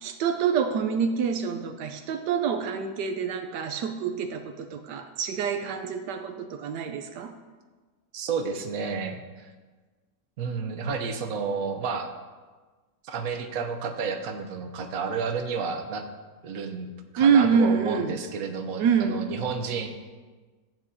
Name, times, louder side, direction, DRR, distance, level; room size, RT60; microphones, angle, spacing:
voice 1, 0.0-7.3 17.2-18.1 18.8-19.2, right 6 dB, 85° right, 6 dB, 1.3 m, -26 dB
voice 2, 8.1-9.5 10.4-12.1 13.0-16.0 16.4-19.9, right 5 dB, 60° right, 5 dB, 1.3 m, -31 dB
14.5 x 9.0 x 2.8 m, 1.4 s
omnidirectional pair, 1.8 m